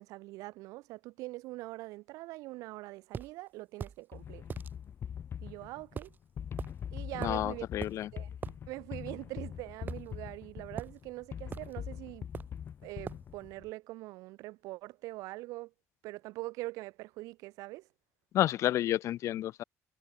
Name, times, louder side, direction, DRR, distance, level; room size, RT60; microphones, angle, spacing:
voice 1, 0.0-4.4 5.4-6.1 6.9-7.7 8.1-8.4 8.7-12.3 12.8-15.7 16.0-17.9, right 20 dB, 90° right, 2.6 m, -43 dB
sound 1, 3.1-3.3 3.8-4.0 4.5-4.7 6.0-6.2 6.6-6.7 7.2-7.4 7.8-8.0 8.4-8.6 9.9-10.4 10.8-11.0 11.5-11.7 12.3-12.6 13.1-13.3, right 6 dB, 35° right, 3.3 m, -41 dB
sound 2, 4.1-13.7, left 8 dB, 45° left, 3.5 m, -43 dB
voice 2, 7.2-8.1 18.3-19.6, left 13 dB, 60° left, 0.6 m, -30 dB
cardioid pair, 120°, 6 cm